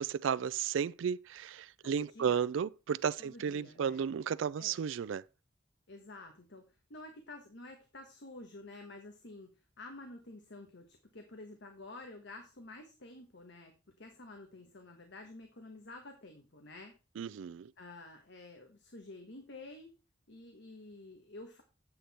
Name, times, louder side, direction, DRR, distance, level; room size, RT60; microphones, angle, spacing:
voice 1, 0.0-5.2 17.2-17.7, right 7 dB, 75° right, 0.3 m, -33 dB
voice 2, 1.8-2.4 3.2-4.0 4.6-4.8 5.9-17.0 17.8-19.9 20.3-21.6, left 2 dB, 60° left, 1.4 m, -50 dB
8.3 x 7.7 x 4.2 m
head